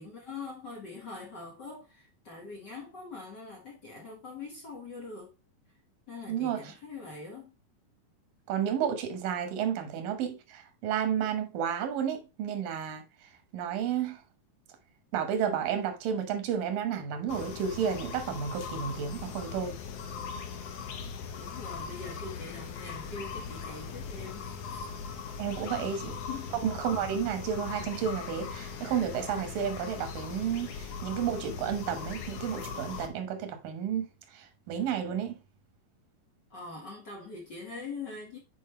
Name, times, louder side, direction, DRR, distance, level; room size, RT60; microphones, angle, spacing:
voice 1, 0.0-5.3 6.1-7.6 21.4-24.9 25.8-25.9 26.3-26.5 36.5-38.4, left 4 dB, 40° left, 1.6 m, -43 dB
voice 2, 6.3-6.6 8.5-13.0 13.5-14.2 15.1-19.8 25.4-26.1 26.6-35.4, right 8 dB, 90° right, 2.9 m, -32 dB
sound 1, 17.3-33.1, left 6 dB, 70° left, 1.6 m, -39 dB
8.6 x 4.5 x 3.1 m
omnidirectional pair, 3.8 m